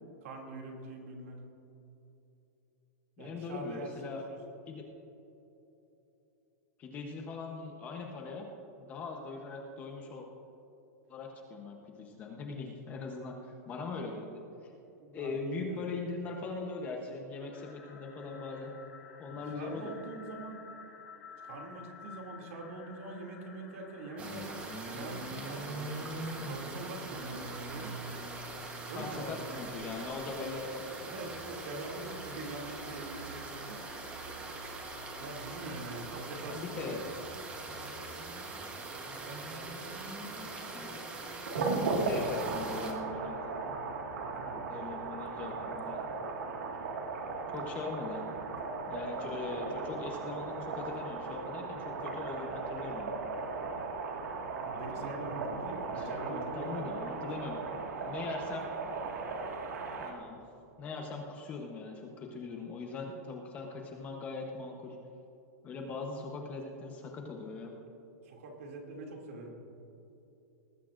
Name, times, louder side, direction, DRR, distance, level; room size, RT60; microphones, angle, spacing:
voice 1, 0.2-1.4 3.2-3.9 4.3-4.6 15.0-15.9 18.4-18.5 19.3-20.6 21.4-24.6 24.9-26.1 26.4-27.9 28.9-30.1 31.0-33.8 35.2-37.0 39.2-39.9 44.4-44.7 46.7-47.2 54.6-57.3 68.2-69.5, right 2 dB, 50° right, 0 dB, 2.5 m, -44 dB
voice 2, 3.2-4.2 4.7-4.9 6.8-8.5 8.8-10.3 11.1-14.4 15.1-18.7 19.2-20.0 28.9-30.9 36.5-37.0 40.7-41.0 41.7-43.5 44.7-46.2 47.5-48.2 48.9-53.2 54.9-55.1 56.0-57.6 58.0-58.7 60.0-60.4 60.8-65.0 65.6-67.7, left 4 dB, 15° left, 1 dB, 0.8 m, -41 dB
sound 1, 17.5-35.1, left 5 dB, 75° left, 2.6 m, -54 dB
sound 2, 24.2-42.9, right 2 dB, 15° right, 1.1 m, -42 dB
sound 3, 41.4-60.1, right 4 dB, 75° right, 1.8 m, -37 dB
19.5 x 15.0 x 2.5 m, 3.0 s
supercardioid pair, 175°, 9 cm